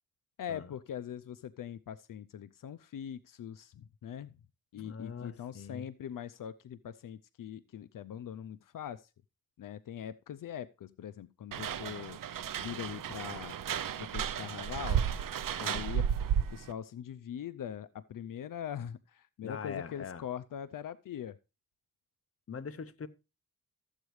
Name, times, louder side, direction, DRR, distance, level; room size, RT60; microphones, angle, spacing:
voice 1, 0.4-4.4 4.7-9.1 9.6-12.2 12.6-13.6 14.0-15.1 15.6-16.1 16.5-21.4, left 9 dB, 75° left, 0.5 m, -42 dB
voice 2, 4.7-5.9 15.6-15.9 19.4-20.3 22.5-23.1, left 6 dB, 45° left, 0.8 m, -42 dB
sound 1, 11.5-16.7, right 8 dB, 75° right, 0.6 m, -33 dB
13.5 x 8.0 x 3.1 m
wide cardioid pair, 95°, 33 cm